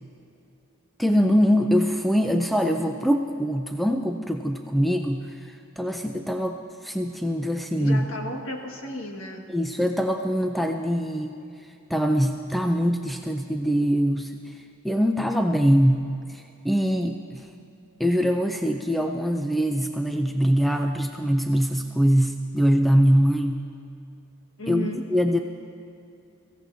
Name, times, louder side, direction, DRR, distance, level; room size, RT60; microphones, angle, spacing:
voice 1, 1.0-8.1 9.5-11.4 11.9-14.6 14.8-17.5 18.0-23.6 24.7-25.4, equal, ahead, 4 dB, 0.4 m, -23 dB
voice 2, 7.8-9.4 24.6-25.0, left 1 dB, 65° left, 1 dB, 1.7 m, -33 dB
23.0 x 15.5 x 2.7 m, 2.7 s
head